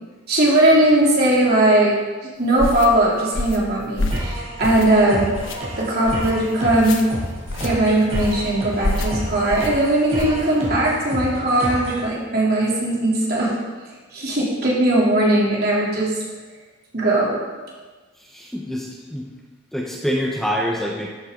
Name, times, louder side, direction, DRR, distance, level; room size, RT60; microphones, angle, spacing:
voice 1, 0.3-1.9 2.2-5.3 5.8-7.0 7.6-13.5 14.1-16.1 16.9-17.4, right 1 dB, 50° right, -5 dB, 3.3 m, -19 dB
sound 1, 2.6-2.9 3.3-3.7 4.0-4.3 4.6-5.0 5.3-5.6 6.0-6.3 6.8-7.0 7.5-7.7 8.1-8.4 8.8-9.1 9.5-9.7 10.2-10.4, left 2 dB, 85° left, 1.1 m, -26 dB
sound 2, 4.1-12.1, equal, 35° right, 3.9 m, -30 dB
voice 2, 18.2-19.3 19.7-21.1, equal, ahead, -2 dB, 1.0 m, -26 dB
13.0 x 9.1 x 3.9 m, 1.3 s
head